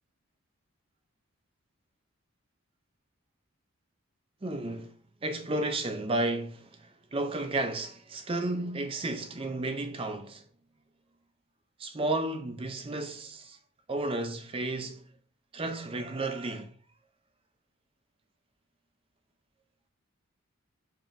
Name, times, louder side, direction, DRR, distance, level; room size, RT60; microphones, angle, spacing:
voice 1, 4.4-4.9 5.2-10.4 11.8-13.6 13.9-15.0 15.5-16.7, right 2 dB, 25° right, 0.5 m, -32 dB
6.9 x 2.8 x 2.5 m
head